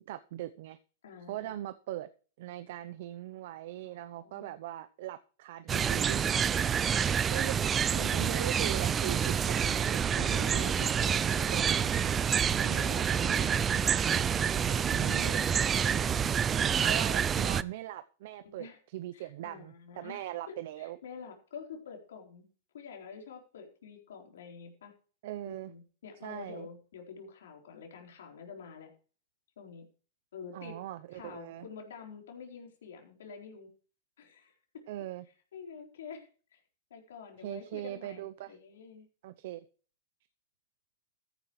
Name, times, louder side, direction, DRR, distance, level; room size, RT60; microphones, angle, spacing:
voice 1, 0.1-0.8 1.3-2.1 2.4-7.6 7.9-10.5 11.5-12.0 16.8-18.7 18.9-21.0 25.2-25.7 26.2-26.7 30.5-31.7 34.9-35.2 37.4-38.6 39.2-39.6, right 14 dB, 65° right, 0.7 m, -40 dB
voice 2, 1.0-1.6 3.8-4.6 6.6-6.7 6.9-7.0 7.9-8.3 10.1-12.1 12.6-14.0 14.5-17.0 18.4-18.8 19.1-22.5 22.7-24.9 25.4-28.9 29.6-29.9 30.3-30.8 31.1-33.7 34.2-34.5 35.5-36.6 36.9-39.1, left 6 dB, 85° left, 4.1 m, -47 dB
sound 1, 5.7-17.6, right 7 dB, 20° right, 0.4 m, -28 dB
14.5 x 9.8 x 3.2 m
hypercardioid pair, 135°, 0 cm